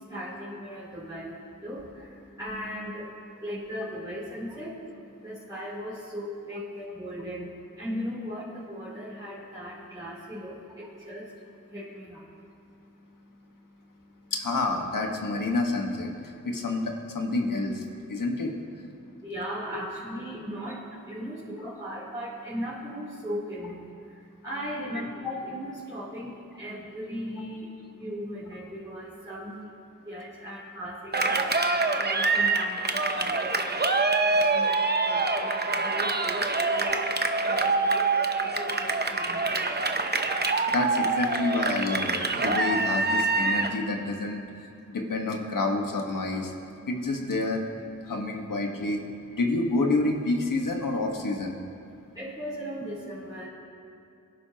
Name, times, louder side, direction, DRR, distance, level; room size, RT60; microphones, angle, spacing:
voice 1, 0.0-14.3 16.4-16.5 19.0-40.7 44.7-45.0 51.9-53.5, equal, 10° right, -10 dB, 3.6 m, -38 dB
voice 2, 14.3-16.1 16.4-18.5 40.7-46.5 46.9-47.6 48.0-49.0 49.3-51.5, left 2 dB, 75° left, 2 dB, 1.6 m, -28 dB
Cheering, 31.1-43.8, right 3 dB, 30° right, 0.8 m, -25 dB
23.5 x 11.0 x 3.0 m, 2.6 s
wide cardioid pair, 70°, 33 cm